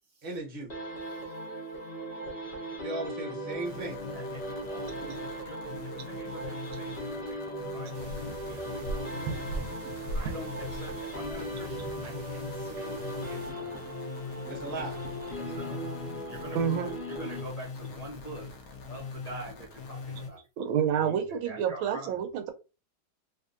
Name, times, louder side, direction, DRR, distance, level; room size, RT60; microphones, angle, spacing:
voice 1, 0.2-0.7 2.8-4.0 14.5-15.0, right 2 dB, 35° right, 0.9 m, -36 dB
sound 1, 0.7-17.9, equal, 35° left, 1.5 m, -38 dB
voice 2, 1.0-1.4 4.0-9.5 10.0-13.9 15.4-18.5 18.9-20.5 20.9-22.1, equal, 80° left, 0.3 m, -46 dB
sound 2, 3.6-20.3, left 4 dB, 60° left, 1.1 m, -42 dB
sound 3, 7.9-13.5, right 2 dB, 70° right, 0.9 m, -40 dB
voice 3, 9.1-9.4 16.5-17.0 20.6-22.5, right 8 dB, 90° right, 1.5 m, -29 dB
3.5 x 2.9 x 2.5 m
omnidirectional pair, 2.1 m